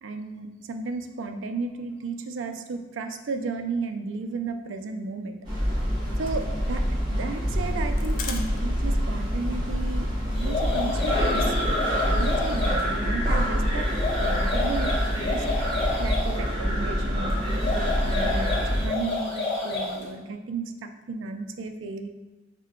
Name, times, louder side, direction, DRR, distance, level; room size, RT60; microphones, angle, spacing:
voice 1, 0.0-5.4 6.2-11.5 12.0-13.9 14.2-22.1, right 3 dB, 75° right, 6 dB, 0.4 m, -34 dB
sound 1, 5.4-18.9, equal, 25° right, 1.2 m, -26 dB
sound 2, 5.6-9.0 9.2-9.3 9.6-9.8 10.1-11.2, left 6 dB, 45° left, 0.3 m, -41 dB
sound 3, 10.3-12.8 13.8-16.3 17.5-20.0, left 3 dB, 30° left, 1.1 m, -30 dB
5.4 x 2.2 x 3.6 m, 1.1 s
head